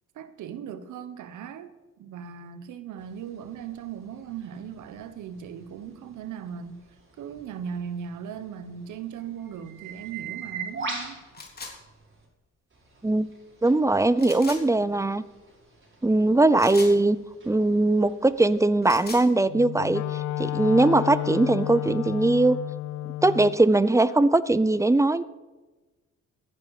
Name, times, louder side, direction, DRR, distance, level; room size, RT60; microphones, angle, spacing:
voice 1, 0.1-1.7 2.0-6.8 7.2-11.2, right 8 dB, 80° right, 1.3 m, -38 dB
sound 1, 3.0-12.3 12.7-18.6, right 4 dB, 40° right, 5.7 m, -42 dB
sound 2, 11.3-11.7 14.2-14.6 16.6-17.0 18.7-19.3, left 3 dB, 30° left, 3.4 m, -39 dB
voice 2, 13.6-15.2 16.0-17.2 17.5-20.0 20.4-22.6 23.2-25.2, right 2 dB, 10° right, 0.6 m, -20 dB
Wind instrument woodwind instrument, 19.5-23.6, left 16 dB, 70° left, 0.5 m, -31 dB
15.0 x 10.5 x 5.0 m
cardioid pair, 90°, 30 cm